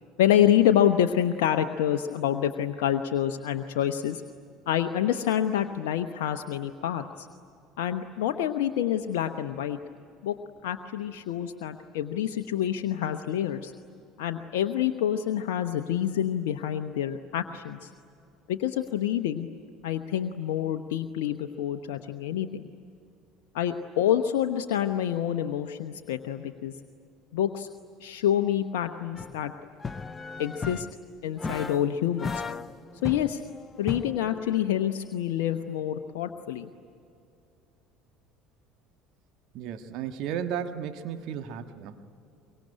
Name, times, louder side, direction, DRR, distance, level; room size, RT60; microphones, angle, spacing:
voice 1, 0.2-4.2 4.7-7.3 7.8-9.8 10.2-10.4 10.6-13.7 14.2-17.9 18.5-19.5 19.8-22.7 23.5-26.7 27.3-27.7 28.0-29.5 30.4-30.9 31.2-32.4 33.0-33.4 33.8-36.7, left 10 dB, 70° left, 7 dB, 0.9 m, -27 dB
sound 1, 29.1-29.4 29.8-31.0 31.4-31.9 32.2-34.6, left 5 dB, 25° left, 1.1 m, -36 dB
voice 2, 39.5-42.2, right 8 dB, 60° right, 7 dB, 1.4 m, -34 dB
24.0 x 23.5 x 9.9 m, 2.6 s
figure-of-eight pair, 65°, 0 cm